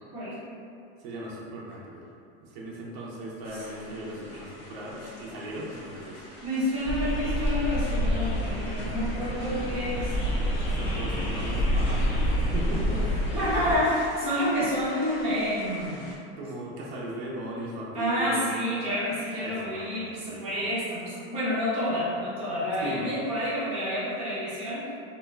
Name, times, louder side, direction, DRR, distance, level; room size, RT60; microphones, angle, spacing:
voice 1, 1.0-2.0 2.4-6.2 10.7-13.0 16.4-18.4 19.4-20.7 22.8-23.1, right 1 dB, 45° right, -4 dB, 0.5 m, -37 dB
sound 1, 3.4-16.2, left 1 dB, 60° left, 0.6 m, -47 dB
voice 2, 6.4-10.2 13.3-16.1 17.9-24.9, equal, 20° right, -11 dB, 0.8 m, -29 dB
sound 2, 6.8-13.7, equal, 85° left, 0.9 m, -27 dB
2.2 x 2.1 x 3.1 m, 2.4 s
supercardioid pair, 170°, 30 cm